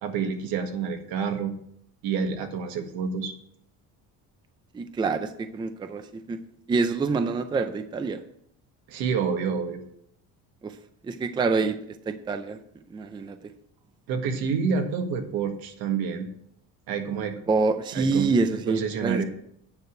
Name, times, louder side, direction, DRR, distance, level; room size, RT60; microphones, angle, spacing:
voice 1, 0.0-1.5 2.0-3.3 8.9-9.8 14.1-16.3 16.9-17.4 17.9-18.3 18.7-19.2, right 6 dB, 80° right, 5 dB, 1.7 m, -28 dB
voice 2, 4.7-6.4 6.7-8.2 10.6-10.7 11.0-11.8 12.1-12.6 12.9-13.4 17.5-19.2, right 4 dB, 15° right, 9 dB, 0.4 m, -26 dB
9.5 x 5.0 x 7.8 m, 0.70 s
cardioid pair, 160°, 36 cm